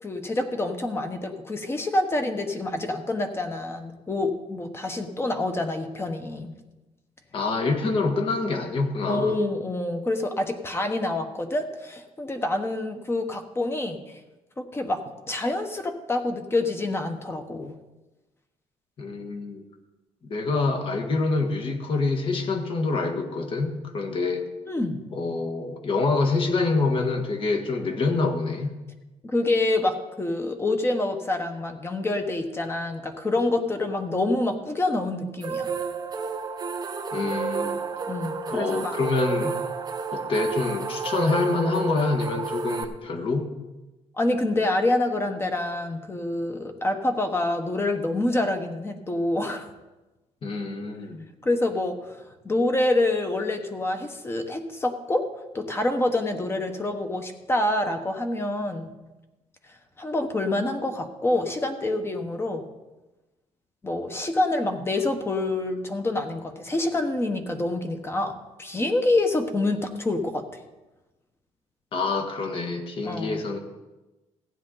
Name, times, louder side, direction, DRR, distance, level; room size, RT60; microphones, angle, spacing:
voice 1, 0.0-6.6 9.1-14.2 14.6-17.8 24.7-25.0 29.2-35.8 38.1-38.9 44.2-49.7 51.4-52.2 52.4-55.3 55.5-58.9 60.0-62.7 63.8-70.6 73.0-73.5, left 2 dB, 20° left, 6 dB, 1.2 m, -27 dB
voice 2, 7.3-9.4 19.0-19.6 20.2-24.5 25.1-28.7 37.1-37.8 38.5-39.5 40.1-43.5 50.4-51.3 71.9-73.6, left 3 dB, 45° left, 5 dB, 1.6 m, -26 dB
sound 1, 35.4-42.8, right 5 dB, 30° right, 0.9 m, -31 dB
15.0 x 9.9 x 3.9 m, 1.1 s
cardioid pair, 130°, 12 cm